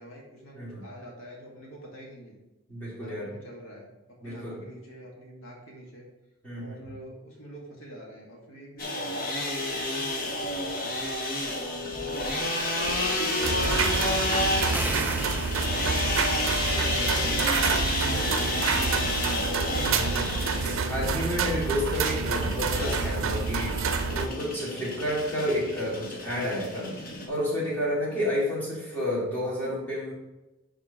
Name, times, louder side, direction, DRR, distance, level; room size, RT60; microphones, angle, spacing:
voice 1, 0.0-2.4 3.0-6.1 6.5-11.2 11.7-19.4 28.1-28.2, right 1 dB, 70° left, -2 dB, 1.9 m, -44 dB
voice 2, 2.7-3.3 4.2-4.6 6.4-6.8 16.9-17.4 19.7-26.9 27.3-30.1, left 1 dB, 10° left, -8 dB, 2.6 m, -31 dB
sound 1, 8.8-27.3, left 1 dB, 45° left, 1.2 m, -30 dB
sound 2, 13.4-24.3, right 4 dB, 75° right, 0.6 m, -28 dB
sound 3, 14.7-16.3, right 3 dB, 10° right, 0.3 m, -36 dB
11.0 x 3.8 x 3.7 m, 1.0 s
head